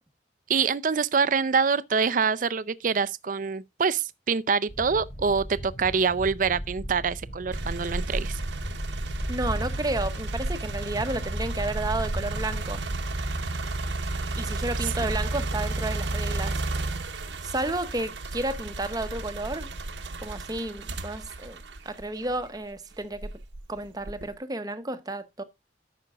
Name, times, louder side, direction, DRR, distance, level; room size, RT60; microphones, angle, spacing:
voice 1, 0.5-8.4, right 5 dB, 45° right, 0.4 m, -25 dB
sound 1, 4.7-14.2, right 1 dB, 45° left, 5.1 m, -37 dB
tractor motor stopping, 7.5-22.6 23.1-24.4, right 2 dB, 75° right, 1.0 m, -32 dB
voice 2, 9.3-12.8 14.4-16.6 17.4-19.7 20.2-21.6 21.8-23.3 23.7-25.4, right 2 dB, 20° right, 0.8 m, -32 dB
13.5 x 5.9 x 2.4 m
head